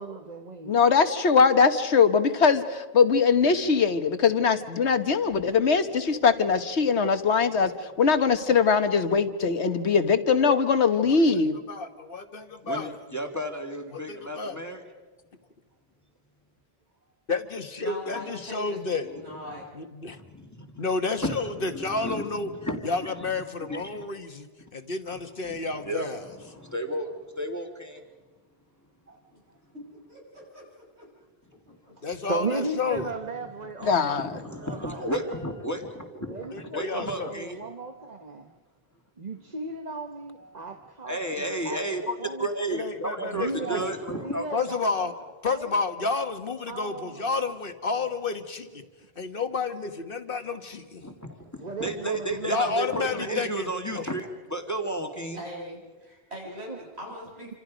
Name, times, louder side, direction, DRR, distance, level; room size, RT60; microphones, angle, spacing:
voice 1, 0.0-0.8 29.1-29.2 32.3-35.3 36.3-38.5 39.2-42.8 43.2-43.9 44.2-44.9 45.5-45.8 46.7-47.1 51.6-53.5 56.7-56.8, right 3 dB, 40° right, 5 dB, 1.3 m, -36 dB
voice 2, 0.7-7.7 8.0-11.6 33.8-34.3, left 5 dB, 85° left, 9 dB, 1.5 m, -21 dB
voice 3, 11.1-13.0 13.9-14.6 17.3-19.1 19.7-20.2 20.8-22.5 22.8-26.2 32.0-33.1 36.5-37.4 42.7-43.8 44.5-45.1 45.4-48.8 49.2-51.0 52.5-53.7 53.9-54.0, left 4 dB, 55° left, 8 dB, 1.5 m, -30 dB
voice 4, 12.6-14.8 19.0-19.1 19.5-19.6 20.1-20.9 21.2-23.3 23.6-24.0 25.5-27.1 27.3-28.0 33.6-33.9 34.2-37.6 40.4-40.7 41.1-44.5 51.0-55.4, right 1 dB, 15° left, 4 dB, 2.1 m, -33 dB
voice 5, 17.8-19.8 29.9-31.1 31.7-31.9 34.4-35.5 55.3-57.6, equal, 75° right, -2 dB, 7.4 m, -42 dB
28.0 x 26.5 x 5.1 m, 1.3 s
omnidirectional pair, 1.1 m